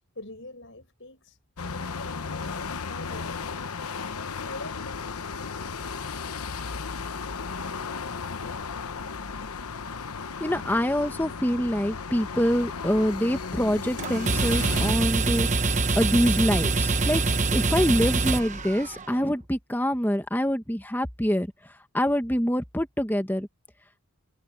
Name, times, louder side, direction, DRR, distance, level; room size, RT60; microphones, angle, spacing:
voice 1, 0.1-1.4 1.7-3.5 4.1-5.9, left 2 dB, 55° left, 8.0 m, -44 dB
sound 1, 1.6-14.9, left 5 dB, 90° left, 1.0 m, -35 dB
voice 2, 10.4-21.5 21.9-23.5, equal, 10° left, 1.2 m, -25 dB
sound 2, 14.0-19.2, right 3 dB, 35° right, 1.1 m, -25 dB
head